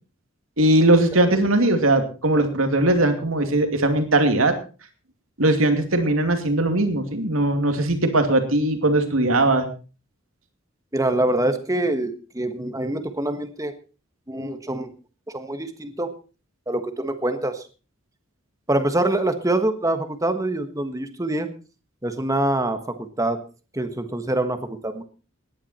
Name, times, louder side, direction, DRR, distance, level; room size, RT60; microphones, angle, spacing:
voice 1, 0.6-4.5 5.4-9.7, right 1 dB, 85° right, 6 dB, 2.6 m, -19 dB
voice 2, 10.9-13.7 14.3-14.9 15.3-16.1 16.7-17.6 18.7-21.5 22.0-23.4 23.7-25.0, right 1 dB, 15° right, 8 dB, 1.4 m, -25 dB
18.0 x 11.0 x 4.3 m, 0.35 s
head